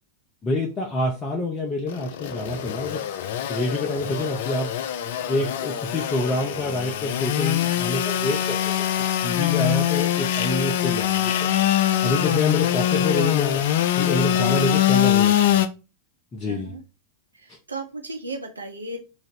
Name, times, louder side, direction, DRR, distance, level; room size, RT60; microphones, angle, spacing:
voice 1, 0.4-3.0 3.5-4.7 5.3-8.9 9.2-11.5 12.0-15.7 16.3-16.7 17.5-17.6, left 2 dB, 20° left, -1 dB, 0.7 m, -27 dB
Engine / Sawing, 1.9-15.7, left 11 dB, 55° left, 0.3 m, -23 dB
voice 2, 16.4-16.8 17.3-19.0, right 2 dB, 75° right, 3 dB, 0.5 m, -35 dB
3.0 x 2.5 x 4.1 m, 0.31 s
figure-of-eight pair, 90°, 0 cm